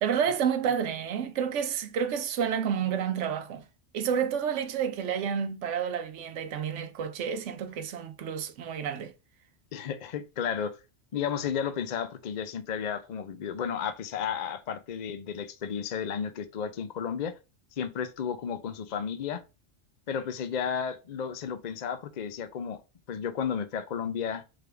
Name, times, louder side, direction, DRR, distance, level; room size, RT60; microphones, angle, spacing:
voice 1, 0.0-3.6 3.9-9.1, right 7 dB, 85° right, 1.0 m, -30 dB
voice 2, 9.7-10.8 11.1-17.3 17.7-19.4 20.1-22.8 23.1-24.4, left 7 dB, 50° left, 0.5 m, -33 dB
3.7 x 3.4 x 3.3 m
omnidirectional pair, 1.2 m